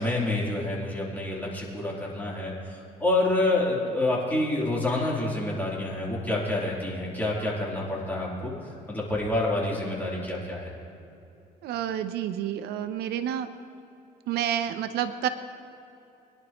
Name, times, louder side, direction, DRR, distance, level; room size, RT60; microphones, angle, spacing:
voice 1, 0.0-8.5 8.9-10.7, left 2 dB, 10° left, -5 dB, 3.7 m, -28 dB
voice 2, 11.6-13.5 14.3-15.3, right 10 dB, 75° right, 10 dB, 0.7 m, -29 dB
22.5 x 10.5 x 3.1 m, 2.8 s
cardioid pair, 110°, 17 cm